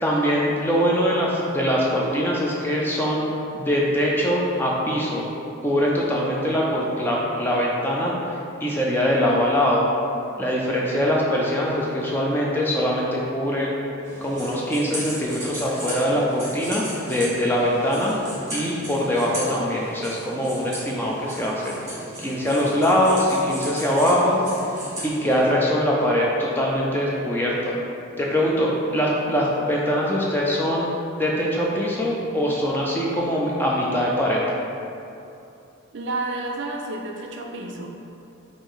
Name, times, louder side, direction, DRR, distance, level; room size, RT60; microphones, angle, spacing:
voice 1, 0.0-3.3 3.5-5.3 5.6-8.1 8.6-9.9 10.4-13.7 14.2-18.2 18.5-21.7 22.2-24.4 25.0-27.8 28.2-30.9 31.2-34.4, equal, 10° left, -4 dB, 0.4 m, -22 dB
sound 1, 14.0-25.5, right 1 dB, 15° right, 1.4 m, -36 dB
voice 2, 35.9-37.9, right 2 dB, 55° right, 1 dB, 0.4 m, -30 dB
4.9 x 2.6 x 3.8 m, 2.7 s
head